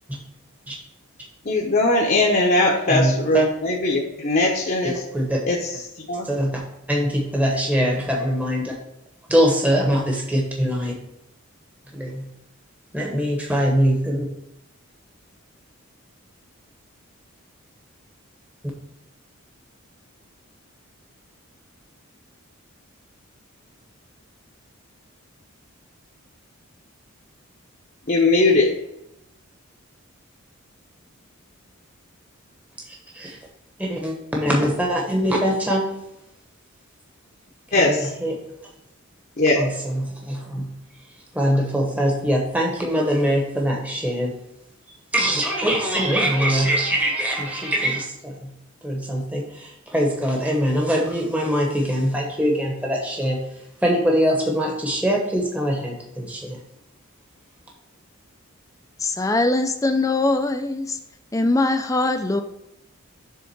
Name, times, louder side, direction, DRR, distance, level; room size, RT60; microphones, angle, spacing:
voice 1, 1.4-5.0 5.5-5.7 6.1-6.3 28.1-28.7 37.7-38.1 39.4-39.6, left 2 dB, 40° left, -2 dB, 0.8 m, -20 dB
voice 2, 2.9-3.4 5.1-5.4 6.2-6.6 6.9-8.7 9.3-10.9 11.9-12.2 12.9-14.2 32.9-33.4 33.8-35.9 37.8-38.4 39.6-40.7 41.3-44.3 45.1-48.5 48.8-53.4 53.8-56.6, equal, 5° right, -1 dB, 1.0 m, -22 dB
voice 3, 59.0-61.0 61.3-62.4, left 2 dB, 15° left, 7 dB, 0.5 m, -21 dB
7.0 x 3.7 x 6.0 m, 0.83 s
head